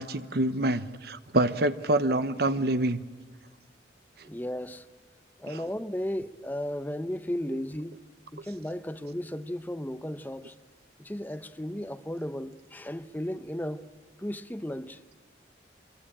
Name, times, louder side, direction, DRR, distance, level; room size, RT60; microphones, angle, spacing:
voice 1, 0.0-3.0 5.5-5.6, right 1 dB, 60° right, 1.0 m, -26 dB
voice 2, 4.2-4.8 5.4-8.0 8.3-10.5 11.0-13.9 14.2-15.0, equal, 10° left, 0.8 m, -35 dB
25.5 x 22.5 x 8.8 m
head